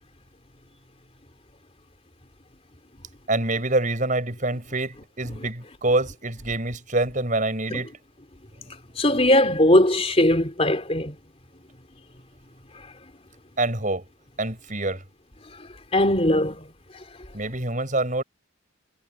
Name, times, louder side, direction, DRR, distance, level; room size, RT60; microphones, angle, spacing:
voice 1, 3.3-7.9 13.6-14.1 14.4-15.0 17.3-18.2, right 2 dB, 40° right, 6.9 m, -26 dB
voice 2, 9.0-11.2 15.9-16.7, left 1 dB, 30° left, 3.7 m, -19 dB
head